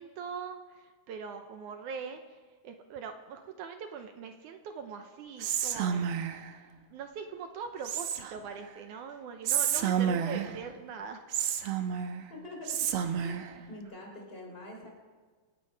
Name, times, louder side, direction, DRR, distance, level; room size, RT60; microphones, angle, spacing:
voice 1, 0.0-2.4 2.6-6.1 6.9-11.8, right 6 dB, 75° right, 6 dB, 2.1 m, -42 dB
Whispering, 5.4-6.5 7.8-8.5 9.4-10.6 11.3-12.2 12.7-13.5, right 8 dB, 90° right, 1.4 m, -30 dB
voice 2, 12.3-12.9 13.2-14.9, left 2 dB, 15° left, 0 dB, 3.4 m, -45 dB
26.0 x 10.0 x 4.7 m, 1.5 s
omnidirectional pair, 4.0 m